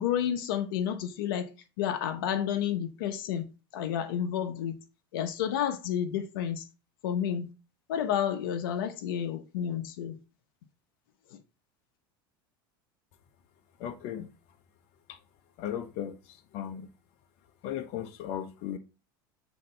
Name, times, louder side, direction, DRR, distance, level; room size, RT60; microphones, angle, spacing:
voice 1, 0.0-1.5 1.8-3.5 3.7-4.8 5.1-6.6 7.0-7.5 7.9-10.2, left 9 dB, 80° left, 1.0 m, -30 dB
voice 2, 13.8-14.3 15.1-15.2 15.6-16.9 17.6-18.8, left 10 dB, 60° left, 1.0 m, -36 dB
7.5 x 3.9 x 4.5 m
supercardioid pair, 125°, 12 cm